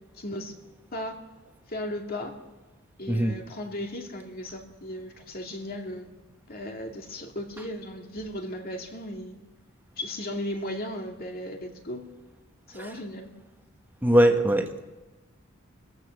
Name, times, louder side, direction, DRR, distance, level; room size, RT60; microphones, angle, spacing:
voice 1, 0.2-0.5 0.9-1.2 1.7-2.4 3.0-6.1 6.5-9.4 10.0-12.1 12.7-13.3, left 1 dB, 45° left, 2 dB, 2.4 m, -36 dB
voice 2, 14.0-14.7, right 1 dB, 10° right, 4 dB, 1.4 m, -21 dB
27.5 x 15.0 x 6.4 m, 1.2 s
head